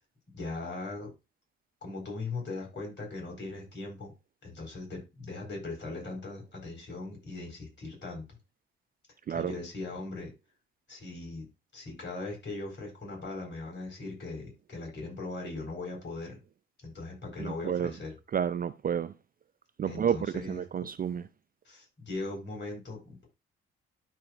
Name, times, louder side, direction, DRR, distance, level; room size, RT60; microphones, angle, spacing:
voice 1, 0.3-1.1 1.8-4.1 4.4-8.2 9.3-10.3 10.9-11.5 11.7-16.4 16.8-18.1 19.9-20.9 21.6-23.3, left 3 dB, 35° left, 4.7 m, -39 dB
voice 2, 17.4-17.9 18.3-19.1 19.8-21.3, right 8 dB, 30° right, 0.4 m, -30 dB
12.5 x 4.4 x 2.5 m
hypercardioid pair, 45°, 30 cm